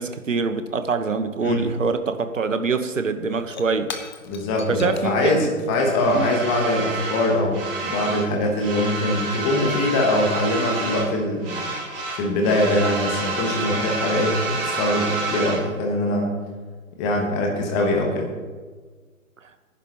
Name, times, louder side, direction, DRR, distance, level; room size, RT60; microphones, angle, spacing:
voice 1, 0.0-3.9 4.7-5.5 6.1-6.3, right 4 dB, 60° right, 10 dB, 1.2 m, -24 dB
Shatter / Crushing, 3.2-7.7, left 5 dB, 30° left, 1.0 m, -42 dB
voice 2, 4.2-11.6 12.1-16.3 16.9-18.3, left 1 dB, 10° left, 2 dB, 1.2 m, -22 dB
sound 1, 6.0-8.3 8.6-11.2 11.4-15.6, right 3 dB, 40° right, 3.3 m, -29 dB
19.5 x 10.5 x 3.0 m, 1.5 s
figure-of-eight pair, 140°, 42 cm